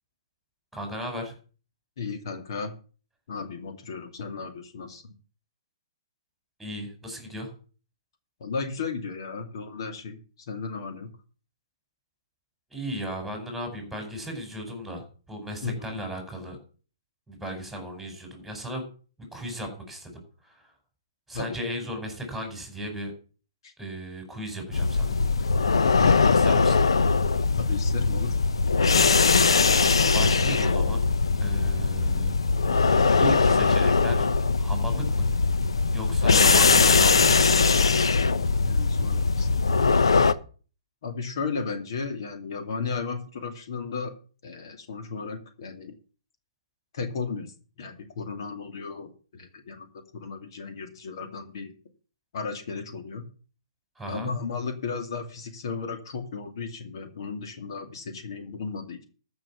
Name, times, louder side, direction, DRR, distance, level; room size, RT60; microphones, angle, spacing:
voice 1, 0.7-1.3 6.6-7.5 12.7-16.6 17.3-18.8 19.3-20.7 21.3-23.1 23.8-25.2 26.3-26.8 30.1-31.0 31.4-32.3 33.2-34.3 34.6-35.3 35.9-37.8 54.0-54.3, right 1 dB, ahead, 4 dB, 4.9 m, -36 dB
voice 2, 2.0-2.7 3.3-5.1 8.4-11.1 15.6-16.0 21.3-21.6 23.6-23.7 25.4-25.5 26.0-26.5 27.6-28.4 38.6-40.0 41.0-44.1 44.4-45.9 46.9-51.7 52.3-53.3 54.1-59.0, left 5 dB, 60° left, 6 dB, 2.4 m, -35 dB
sound 1, 24.7-40.3, left 4 dB, 85° left, 0.8 m, -21 dB
14.0 x 6.2 x 7.1 m, 0.39 s
hypercardioid pair, 140°, 3 cm